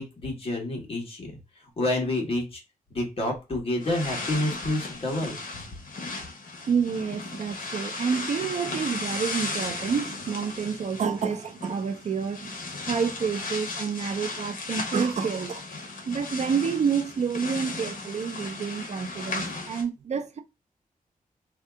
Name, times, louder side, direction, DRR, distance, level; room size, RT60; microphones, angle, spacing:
voice 1, 0.0-1.4 1.8-2.6 2.9-5.6, left 1 dB, 40° left, 1.1 m, -29 dB
sound 1, 3.8-19.8, left 3 dB, 65° left, 0.9 m, -36 dB
voice 2, 6.7-12.5 12.9-15.6 16.1-20.4, right 6 dB, 50° right, 0.4 m, -28 dB
2.7 x 2.3 x 3.4 m
wide cardioid pair, 165°, 15 cm